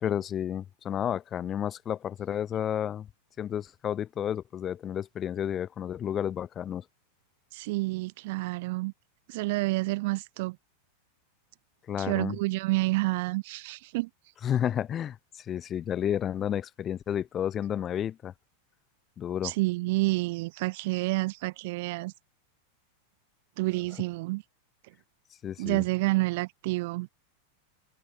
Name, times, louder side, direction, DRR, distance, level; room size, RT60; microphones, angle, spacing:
voice 1, 0.0-3.1 3.4-6.8 11.9-12.4 14.4-18.3 19.2-19.5 25.4-25.8, left 9 dB, 25° left, 0.8 m, -31 dB
voice 2, 7.5-8.9 9.3-10.6 12.0-14.1 19.4-22.1 23.6-24.4 25.6-27.1, right 22 dB, 50° right, 0.3 m, -29 dB
figure-of-eight pair, 90°, 0 cm